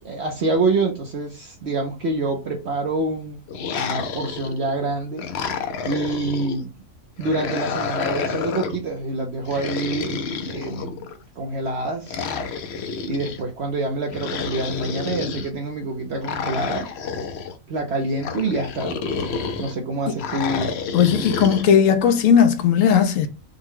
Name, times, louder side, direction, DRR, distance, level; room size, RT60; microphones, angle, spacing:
voice 1, 0.0-3.4 3.7-5.2 5.9-6.7 7.2-11.0 11.4-12.2 13.1-16.9 17.7-19.0 19.6-20.7, right 2 dB, 55° right, 1.0 m, -26 dB
sound 1, 3.5-4.7 5.2-6.6 7.2-8.8 9.5-11.2 12.1-13.4 14.1-15.5 16.2-17.5 18.2-19.7 20.2-21.7, left 5 dB, 60° left, 0.8 m, -29 dB
voice 2, 20.9-23.3, left 8 dB, 80° left, 1.0 m, -17 dB
5.3 x 2.3 x 3.6 m
omnidirectional pair, 1.4 m